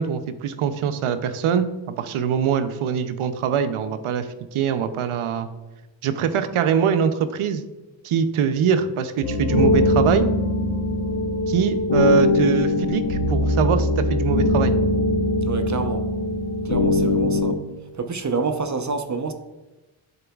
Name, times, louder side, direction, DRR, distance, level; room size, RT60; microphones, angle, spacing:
voice 1, 0.0-5.5 6.0-7.6 8.0-10.3 11.5-14.7, right 7 dB, 80° right, 11 dB, 0.6 m, -23 dB
sound 1, 9.2-17.5, left 1 dB, 90° left, 1.3 m, -21 dB
voice 2, 15.5-16.0 16.6-17.6 17.9-19.3, right 4 dB, 35° right, 7 dB, 0.8 m, -27 dB
10.5 x 3.9 x 2.3 m, 1.1 s
cardioid pair, 45°, 49 cm